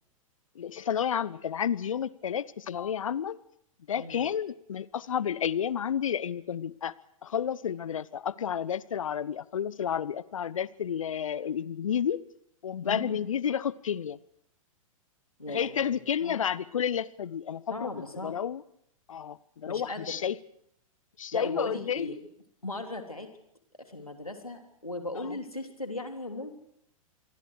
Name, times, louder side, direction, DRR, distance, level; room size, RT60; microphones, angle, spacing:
voice 1, 0.6-3.4 3.9-6.9 7.2-12.2 12.6-14.2 15.5-17.9 18.2-18.6 19.1-20.4 21.2-22.1 25.1-25.4, left 8 dB, 65° left, 0.9 m, -31 dB
voice 2, 12.8-13.2 15.4-16.3 17.7-18.4 19.6-20.2 21.3-22.2 22.6-23.3 23.8-26.5, left 2 dB, 85° left, 3.4 m, -37 dB
27.0 x 23.5 x 4.9 m
figure-of-eight pair, 100°, 18 cm